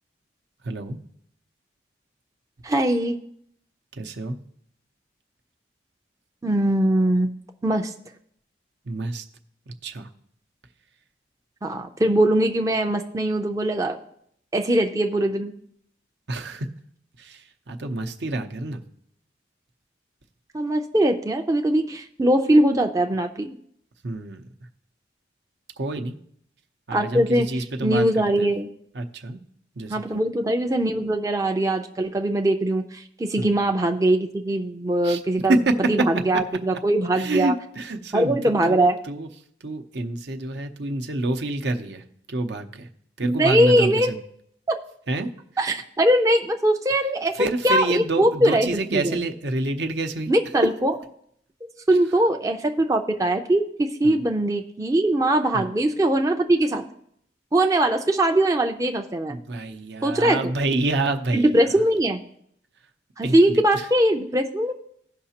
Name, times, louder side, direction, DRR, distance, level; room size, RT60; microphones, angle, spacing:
voice 1, 0.6-1.0 3.9-4.4 8.8-9.2 9.7-10.1 16.3-16.7 17.2-18.8 24.0-24.4 25.8-26.2 26.9-28.5 28.9-29.4 29.8-30.2 33.4-33.5 35.0-35.2 35.5-36.1 36.3-36.4 37.1-39.3 39.6-42.9 43.2-44.2 45.1-45.3 47.3-50.3 54.0-54.2 55.5-55.7 59.3-61.8 63.2-63.9, right 2 dB, 65° right, 5 dB, 0.8 m, -27 dB
voice 2, 2.6-3.2 6.4-7.3 7.6-7.9 11.6-14.0 14.5-15.5 20.5-23.5 26.9-27.5 27.8-28.7 29.9-35.6 35.9-37.5 38.1-39.0 43.2-44.1 44.7-44.8 45.6-47.3 47.6-49.2 50.3-50.9 51.9-56.8 57.5-59.4 60.0-60.4 61.3-62.2 63.2-64.7, right 1 dB, 20° right, 4 dB, 0.5 m, -21 dB
17.0 x 5.7 x 2.9 m, 0.69 s
head